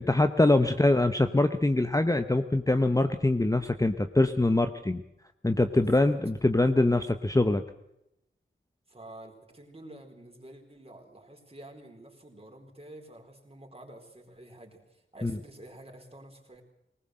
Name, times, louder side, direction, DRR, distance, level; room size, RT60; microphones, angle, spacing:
voice 1, 0.0-5.0 5.4-7.6 15.2-15.4, left 2 dB, 15° left, 8 dB, 0.9 m, -24 dB
voice 2, 5.7-6.1 8.9-16.6, right 1 dB, 30° right, 2 dB, 4.5 m, -49 dB
19.5 x 19.5 x 7.8 m, 0.83 s
wide cardioid pair, 80°, 20 cm